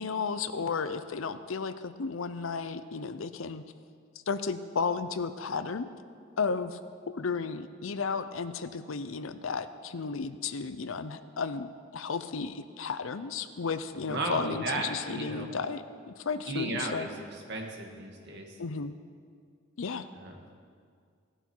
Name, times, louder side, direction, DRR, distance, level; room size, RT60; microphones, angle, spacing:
voice 1, 0.0-3.6 4.3-5.9 6.4-6.8 7.1-17.1 18.6-18.9 19.8-20.1, left 5 dB, 65° left, 12 dB, 0.6 m, -33 dB
voice 2, 13.9-15.5 16.5-18.5 20.2-20.4, right 2 dB, 55° right, 1 dB, 1.9 m, -35 dB
17.5 x 12.0 x 4.6 m, 2.1 s
head